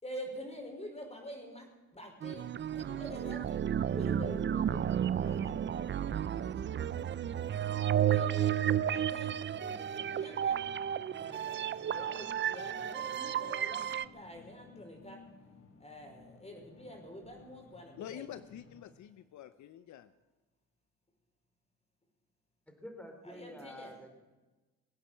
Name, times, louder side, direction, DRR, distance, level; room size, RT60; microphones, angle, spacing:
voice 1, 0.0-2.5 2.8-3.6 3.9-6.0 7.9-10.6 11.2-15.2 15.8-18.3 23.2-23.9, equal, 20° left, 3 dB, 5.1 m, -47 dB
sound 1, 2.2-14.1, right 10 dB, 40° right, 0.5 m, -32 dB
sound 2, 3.8-18.9, left 5 dB, 45° left, 1.7 m, -57 dB
voice 2, 18.0-20.1, left 11 dB, 70° left, 13 dB, 0.7 m, -47 dB
voice 3, 22.7-24.1, left 1 dB, 5° left, 4 dB, 3.4 m, -48 dB
21.5 x 8.7 x 7.6 m, 1.2 s
cardioid pair, 90°, 30 cm